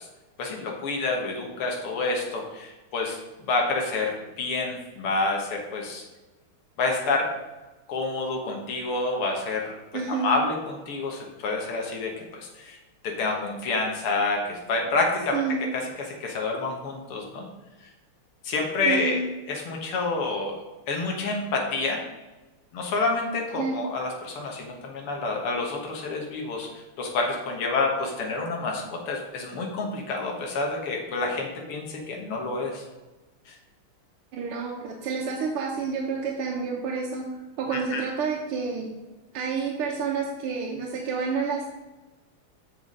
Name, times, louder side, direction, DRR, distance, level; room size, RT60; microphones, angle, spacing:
voice 1, 0.4-3.2 3.4-6.0 6.8-7.3 7.9-9.7 10.1-12.8 13.0-15.4 16.2-17.5 18.4-19.2 19.5-20.5 20.9-22.0 22.7-32.8 33.5-33.6 37.7-38.0, left 3 dB, 85° left, 1 dB, 2.3 m, -28 dB
voice 2, 9.9-10.3 15.3-15.7 18.8-19.3 23.6-23.9 34.3-38.9 39.3-41.7, right 5 dB, 85° right, 0 dB, 1.9 m, -29 dB
7.2 x 7.0 x 5.2 m, 1.1 s
omnidirectional pair, 2.4 m